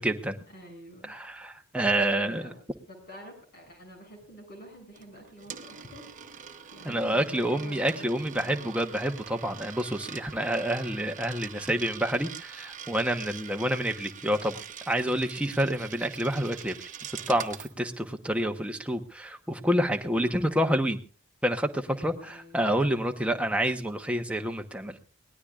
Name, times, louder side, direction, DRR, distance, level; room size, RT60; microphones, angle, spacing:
voice 1, 0.0-0.4 1.0-2.5 6.8-21.0 21.4-25.0, right 1 dB, 5° right, 4 dB, 1.0 m, -28 dB
voice 2, 0.5-1.2 2.2-2.6 2.9-6.1 6.7-8.6 20.2-20.8 21.8-22.7, equal, 50° left, 4 dB, 7.1 m, -48 dB
Coin (dropping), 5.0-17.7, right 8 dB, 40° right, 1.1 m, -44 dB
23.5 x 18.5 x 2.5 m, 0.35 s
head